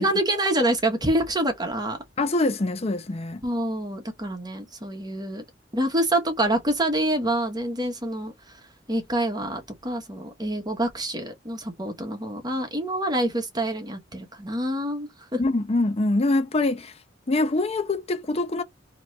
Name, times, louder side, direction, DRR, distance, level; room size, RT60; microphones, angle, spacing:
voice 1, 0.0-2.0 3.4-5.4 5.7-8.6 8.9-15.4, right 1 dB, 20° right, 1.2 m, -26 dB
voice 2, 2.2-3.4 15.4-16.9 17.3-18.6, left 2 dB, 35° left, 0.6 m, -24 dB
3.9 x 3.0 x 3.2 m
head